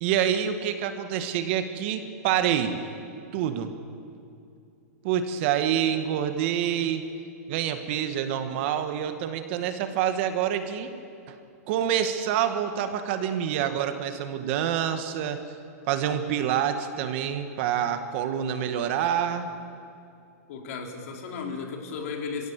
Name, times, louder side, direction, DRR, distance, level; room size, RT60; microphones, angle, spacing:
voice 1, 0.0-2.8 3.3-3.7 5.0-7.0 7.5-10.9 11.3-11.4 11.7-15.4 15.9-19.5, right 9 dB, 45° right, 8 dB, 1.9 m, -27 dB
voice 2, 20.5-22.5, left 5 dB, 60° left, 2 dB, 3.8 m, -35 dB
27.5 x 16.5 x 8.4 m, 2.6 s
hypercardioid pair, 145°, 9 cm